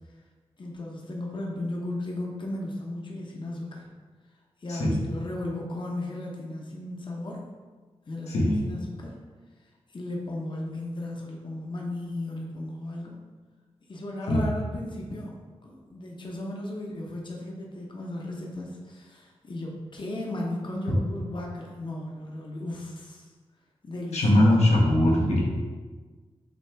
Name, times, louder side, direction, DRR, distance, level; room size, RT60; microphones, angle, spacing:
voice 1, 0.6-3.9 4.6-7.4 8.1-9.2 9.9-13.2 13.9-15.3 15.6-23.3 23.8-24.7, left 1 dB, 45° left, -2 dB, 0.7 m, -35 dB
voice 2, 4.7-5.0 8.3-8.7 14.3-14.5 20.9-21.0 24.1-25.4, left 1 dB, 85° left, -3 dB, 0.9 m, -21 dB
6.1 x 2.4 x 3.3 m, 1.4 s
cardioid pair, 70°, 11 cm